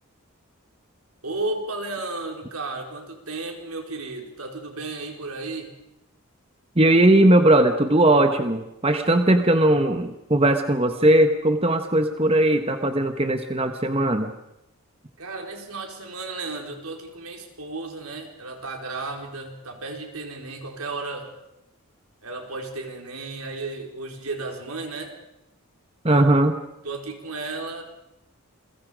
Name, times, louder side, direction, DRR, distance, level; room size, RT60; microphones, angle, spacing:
voice 1, 1.2-5.7 15.2-21.3 22.2-25.1 26.1-26.2 26.8-27.8, right 3 dB, 80° right, 2 dB, 4.4 m, -33 dB
voice 2, 6.8-14.3 26.0-26.5, right 1 dB, 25° right, 7 dB, 1.2 m, -19 dB
29.0 x 22.5 x 5.1 m, 0.87 s
head